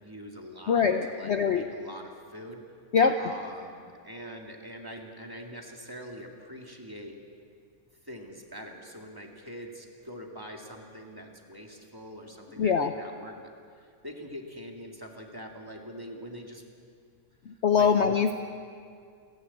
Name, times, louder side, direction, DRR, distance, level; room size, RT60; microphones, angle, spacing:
voice 1, 0.0-2.6 3.2-7.2 8.0-13.5 13.8-16.6 17.5-17.9, equal, 15° right, 1 dB, 2.0 m, -44 dB
voice 2, 0.7-1.6 2.9-3.2 12.6-12.9 17.5-18.3, left 6 dB, 55° left, 7 dB, 0.9 m, -23 dB
29.0 x 11.5 x 8.4 m, 2.3 s
omnidirectional pair, 1.6 m